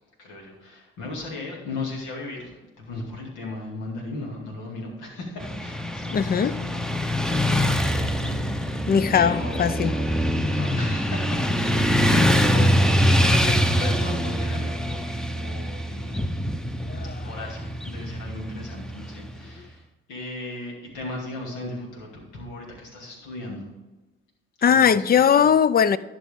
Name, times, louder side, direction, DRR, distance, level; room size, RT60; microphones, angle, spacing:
voice 1, 0.2-8.9 9.1-16.3 17.2-19.8 20.1-23.7 24.7-25.2, left 2 dB, 75° left, 2.4 m, -37 dB
Motorcycle / Traffic noise roadway noise, 5.4-19.5, equal, ahead, 0.7 m, -24 dB
voice 2, 6.1-6.6 8.9-9.9 16.9-17.3 19.6-19.7 24.6-26.0, left 7 dB, 30° left, 0.5 m, -20 dB
11.0 x 6.3 x 3.6 m
hypercardioid pair, 50°, 30 cm